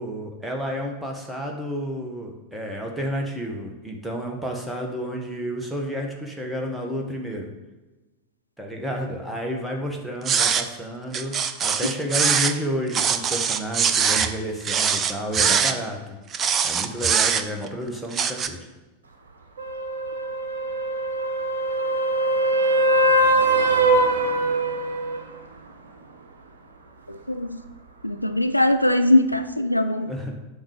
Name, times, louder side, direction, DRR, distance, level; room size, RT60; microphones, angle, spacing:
voice 1, 0.0-7.5 8.6-11.4 11.6-16.2 16.6-18.7 30.0-30.3, equal, 5° right, 0 dB, 1.5 m, -31 dB
sound 1, 10.3-10.7 11.1-12.6 12.9-14.3 14.6-15.7 16.3-17.7 18.1-18.5, right 7 dB, 25° right, 0.5 m, -22 dB
sound 2, 19.6-25.2 29.3-29.4, right 2 dB, 70° right, 0.9 m, -22 dB
voice 2, 27.1-27.6 28.0-30.1, left 1 dB, 90° left, 9 dB, 0.4 m, -21 dB
7.9 x 3.9 x 6.6 m, 1.1 s
figure-of-eight pair, 90°, 0 cm